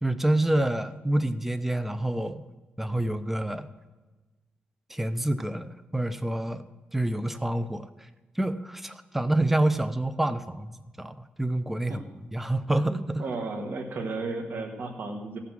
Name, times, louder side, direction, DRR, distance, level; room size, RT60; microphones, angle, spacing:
voice 1, 0.0-2.4 2.8-3.7 4.9-6.6 6.9-7.9 8.4-10.7 11.0-12.0 12.3-13.2, right 1 dB, 5° right, 12 dB, 0.6 m, -27 dB
voice 2, 12.8-15.4, right 3 dB, 60° right, 3 dB, 1.4 m, -34 dB
15.5 x 5.9 x 6.1 m, 1.2 s
cardioid pair, 85°, 4 cm